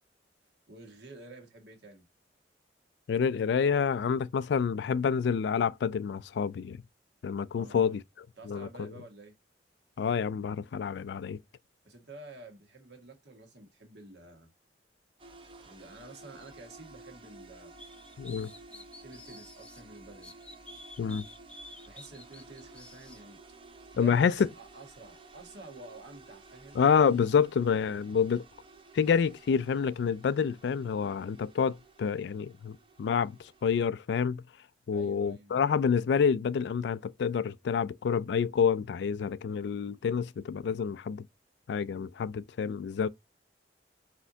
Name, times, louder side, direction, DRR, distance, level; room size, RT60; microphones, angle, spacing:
voice 1, 0.7-2.0 7.5-8.0 8.4-9.3 11.8-14.5 15.6-17.7 18.7-20.3 21.9-23.4 23.9-26.8 34.9-35.7, right 2 dB, 70° right, 1.6 m, -50 dB
voice 2, 3.1-6.8 7.2-8.0 8.5-8.9 10.0-11.4 18.2-18.5 21.0-21.2 24.0-24.5 26.8-28.4 28.9-34.4 34.9-41.2 41.7-43.1, left 6 dB, 70° left, 0.3 m, -28 dB
sound 1, 15.2-33.8, right 3 dB, 30° right, 0.7 m, -54 dB
sound 2, 17.8-19.8 20.2-23.2, left 2 dB, 5° left, 0.5 m, -50 dB
4.5 x 4.2 x 2.7 m
head